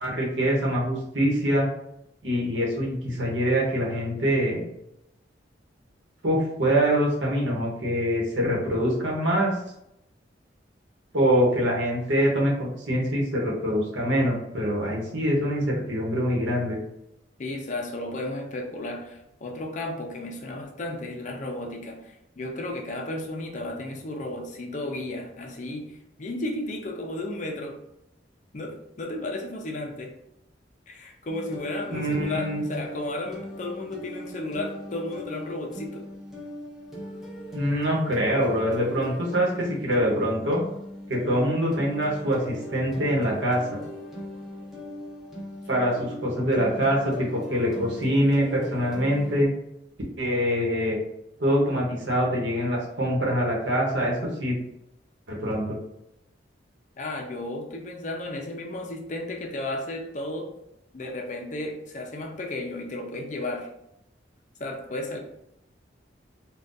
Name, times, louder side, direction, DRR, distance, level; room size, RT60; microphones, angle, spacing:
voice 1, 0.0-1.7 2.2-4.6 6.2-9.5 11.1-16.8 31.9-32.6 37.5-40.6 41.1-43.8 45.7-49.5 50.2-51.0 51.4-54.6 55.3-55.8, equal, 85° right, -3 dB, 1.0 m, -24 dB
voice 2, 17.4-27.8 28.5-30.1 30.9-36.0 57.0-60.5 60.9-63.7 64.6-65.2, left 2 dB, 40° left, 2 dB, 0.5 m, -33 dB
sound 1, 31.3-49.5, left 1 dB, ahead, 0.7 m, -39 dB
3.7 x 2.3 x 2.6 m, 0.83 s
head